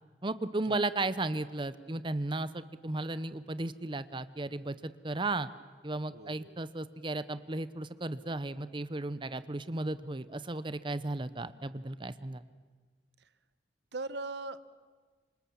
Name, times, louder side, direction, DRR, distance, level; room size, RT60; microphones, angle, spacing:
voice 1, 0.2-5.5 5.8-12.4, right 2 dB, 30° right, 14 dB, 0.8 m, -35 dB
voice 2, 6.1-6.6 13.9-14.6, right 3 dB, 75° right, 14 dB, 1.0 m, -39 dB
26.5 x 26.0 x 7.2 m, 1.4 s
head